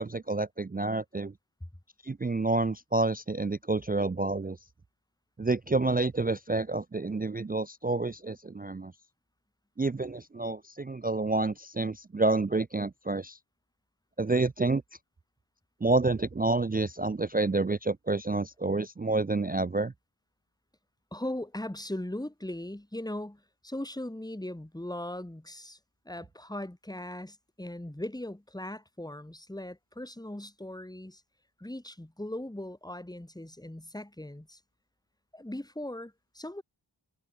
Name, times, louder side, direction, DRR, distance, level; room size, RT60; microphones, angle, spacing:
voice 1, 0.0-1.3 2.0-4.6 5.4-8.9 9.8-13.4 14.2-14.8 15.8-19.9, right 3 dB, 20° right, 0.4 m, -29 dB
voice 2, 21.1-25.8 26.0-31.2 31.6-34.6 35.3-36.6, left 1 dB, 10° left, 1.4 m, -39 dB
wide cardioid pair, 40°, 48 cm